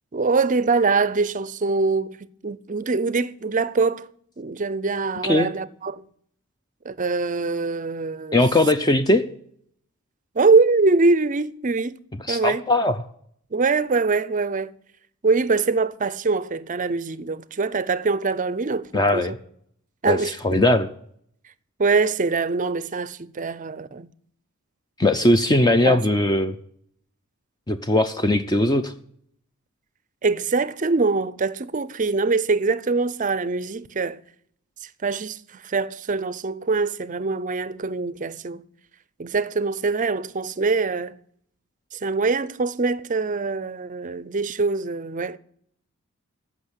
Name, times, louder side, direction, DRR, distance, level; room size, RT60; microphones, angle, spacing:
voice 1, 0.1-2.2 2.4-4.1 4.4-6.1 6.8-8.4 10.4-12.0 12.3-12.6 13.5-14.7 15.2-19.4 20.0-20.6 21.8-24.1 25.8-26.0 30.2-34.2 35.0-38.6 39.2-41.2 41.9-45.4, right 4 dB, 35° right, 0.5 m, -23 dB
voice 2, 8.3-9.2 12.3-13.0 18.9-19.4 20.0-20.2 20.4-20.9 25.0-26.5 27.7-28.9, left 1 dB, 20° left, 0.5 m, -19 dB
14.5 x 6.2 x 8.1 m
head